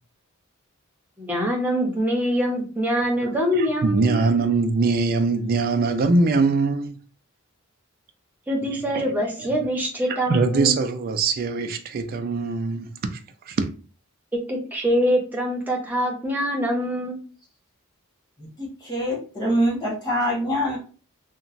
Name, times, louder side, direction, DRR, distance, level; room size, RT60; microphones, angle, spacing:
voice 1, 1.2-4.2 8.5-10.8 14.5-17.2, equal, 10° right, 0.7 m, -24 dB
voice 2, 3.2-6.9 8.9-9.1 9.4-9.5 10.1-13.2 13.5-13.7, right 3 dB, 45° right, 0.3 m, -22 dB
voice 3, 18.6-20.8, equal, 20° left, 1.2 m, -24 dB
2.9 x 2.1 x 2.5 m
head